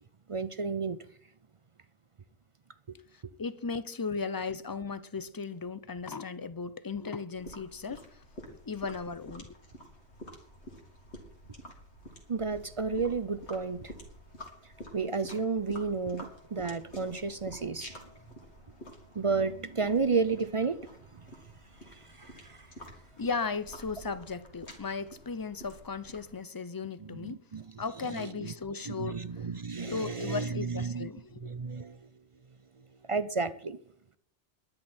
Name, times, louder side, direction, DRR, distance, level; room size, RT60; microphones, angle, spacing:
voice 1, 0.3-1.0 2.9-3.0 3.2-3.3 12.3-13.9 14.9-17.9 19.1-21.2 21.8-23.0 27.0-27.8 28.2-28.5 28.9-31.1 31.4-32.1 33.1-33.8, right 4 dB, 40° right, 0.4 m, -32 dB
voice 2, 3.1-9.5 23.2-27.4 27.8-29.5 29.8-31.5, left 4 dB, 30° left, 0.4 m, -36 dB
sound 1, 7.3-26.3, equal, 60° left, 3.0 m, -49 dB
21.5 x 10.5 x 4.4 m
omnidirectional pair, 1.3 m